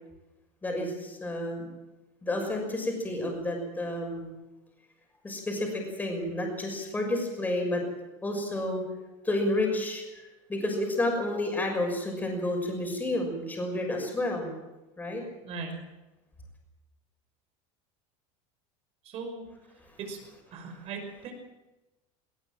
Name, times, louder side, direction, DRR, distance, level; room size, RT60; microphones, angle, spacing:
voice 1, 0.6-1.7 2.2-4.3 5.2-7.8 8.2-8.8 9.2-10.2 10.5-14.5 15.0-15.2, left 1 dB, 10° left, 2 dB, 6.1 m, -30 dB
voice 2, 15.4-15.8 19.0-19.5 20.0-20.2 20.5-21.3, right 4 dB, 40° right, 4 dB, 5.7 m, -38 dB
19.5 x 19.0 x 7.7 m, 1.0 s
supercardioid pair, 160°, 16 cm